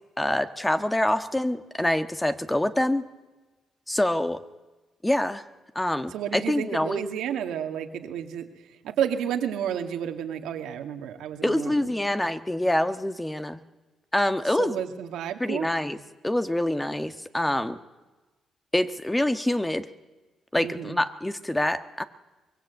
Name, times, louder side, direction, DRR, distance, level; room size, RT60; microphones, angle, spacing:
voice 1, 0.2-3.0 3.9-4.4 5.0-5.4 5.7-7.1 11.4-13.6 14.1-14.8 15.4-16.0 16.2-17.8 18.7-19.9 20.5-22.0, left 1 dB, 10° left, 10 dB, 1.4 m, -26 dB
voice 2, 6.1-8.5 8.8-11.8 14.6-15.7 20.6-21.0, right 9 dB, 85° right, 5 dB, 2.1 m, -31 dB
23.5 x 21.5 x 8.3 m, 1.2 s
supercardioid pair, 65°, 0 cm